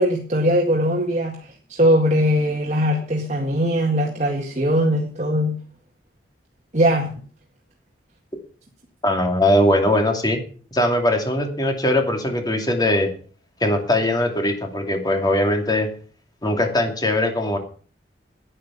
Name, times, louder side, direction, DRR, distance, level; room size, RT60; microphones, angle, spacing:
voice 1, 0.0-5.6 6.7-7.1, equal, 40° right, 0 dB, 1.9 m, -20 dB
voice 2, 9.0-10.4 10.7-13.1 13.6-15.9 16.4-17.6, left 1 dB, 25° left, 4 dB, 2.6 m, -20 dB
11.0 x 9.0 x 7.0 m, 0.42 s
head